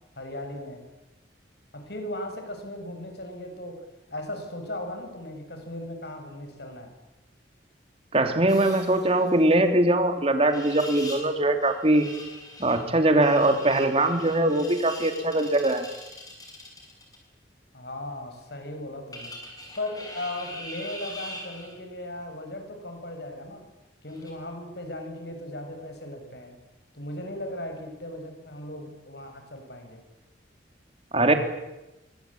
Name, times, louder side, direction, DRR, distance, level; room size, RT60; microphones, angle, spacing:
voice 1, 0.2-0.8 1.7-3.8 4.1-6.9 17.7-19.3 19.8-23.7 24.0-26.6 26.9-30.0, left 1 dB, 60° left, 5 dB, 6.7 m, -37 dB
voice 2, 8.1-12.0 12.6-15.9 31.1-31.3, right 1 dB, 30° right, 6 dB, 3.1 m, -22 dB
sound 1, 8.5-9.5 10.4-11.3 11.6-17.2 19.1-21.8 24.1-24.3, left 1 dB, 20° left, 7.0 m, -42 dB
27.0 x 24.5 x 8.8 m, 1.0 s
head